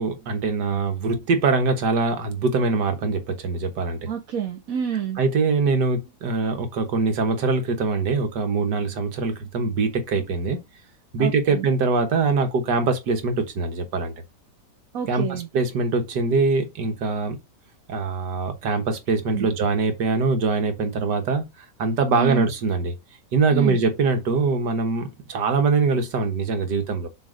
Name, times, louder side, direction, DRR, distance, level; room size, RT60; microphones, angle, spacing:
voice 1, 0.0-4.1 5.2-10.6 11.1-14.1 15.1-17.4 17.9-21.4 21.8-23.0 23.3-27.1, right 4 dB, 85° right, 1.9 m, -23 dB
voice 2, 4.1-5.2 11.2-11.6 14.9-15.5 19.3-19.5 22.2-22.4 23.5-23.8, right 8 dB, 60° right, 1.3 m, -28 dB
7.0 x 3.5 x 5.0 m
omnidirectional pair, 1.8 m